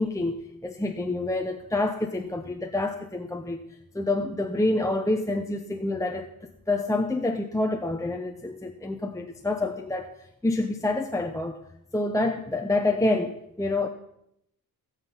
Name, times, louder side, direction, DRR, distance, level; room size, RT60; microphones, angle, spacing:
voice 1, 0.0-3.6 3.9-10.1 10.4-11.6 11.9-13.9, left 2 dB, 10° left, 3 dB, 0.8 m, -27 dB
17.5 x 7.4 x 5.8 m, 0.78 s
cardioid pair, 100°, 36 cm